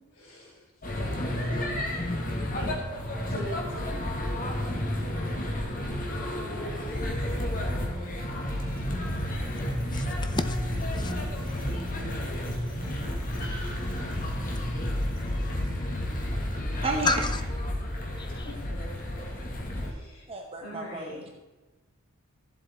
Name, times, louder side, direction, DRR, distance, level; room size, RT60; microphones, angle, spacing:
voice 1, 0.1-0.6 1.0-1.5 1.9-2.0 2.5-2.7 3.3-4.0 18.4-19.4 19.7-20.2 20.6-21.2, equal, 65° left, 3.6 m, -42 dB
sound 1, 0.8-19.9, left 1 dB, 40° left, 1.8 m, -31 dB
voice 2, 2.0-2.6 5.4-16.6 17.0-17.4 18.2-18.5, left 3 dB, 20° left, 0.5 m, -39 dB
voice 3, 16.8-17.3 20.3-21.3, right 3 dB, 30° right, 0.9 m, -32 dB
14.0 x 7.7 x 4.3 m
head